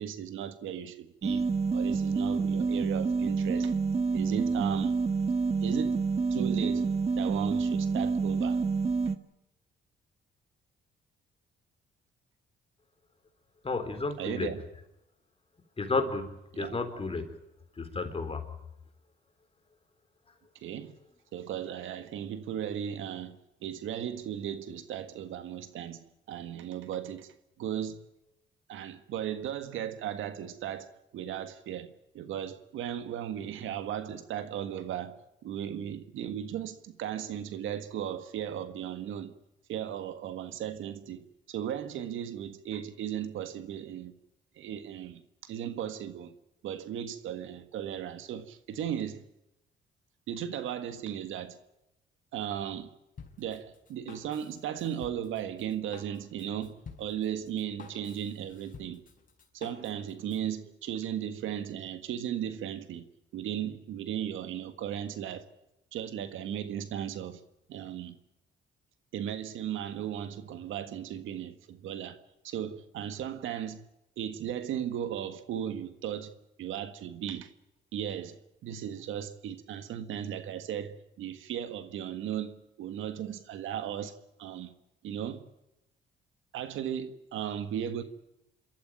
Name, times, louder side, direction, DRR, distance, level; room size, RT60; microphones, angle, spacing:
voice 1, 0.0-3.7 4.1-4.9 5.6-6.0 6.3-8.6 14.2-14.6 16.5-16.8 20.6-20.9 21.3-28.0 28.7-35.2 35.4-39.3 39.7-44.1 44.6-46.3 46.6-49.2 50.3-51.6 52.3-52.9 53.4-59.0 59.5-63.1 63.3-65.5 65.9-67.4 67.7-68.2 69.1-72.2 72.4-73.8 74.2-76.3 76.6-77.5 77.9-84.1 84.4-84.7 85.0-85.4 86.5-88.0, right 10 dB, 80° right, 1.7 m, -36 dB
sound 1, 1.2-9.2, right 4 dB, 35° right, 1.5 m, -28 dB
voice 2, 13.6-14.5 15.8-16.3 16.6-17.3 17.8-18.4, left 3 dB, 30° left, 3.8 m, -31 dB
Drum kit, 53.2-60.5, left 5 dB, 45° left, 5.0 m, -51 dB
27.5 x 13.5 x 9.0 m
cardioid pair, 90°, 20 cm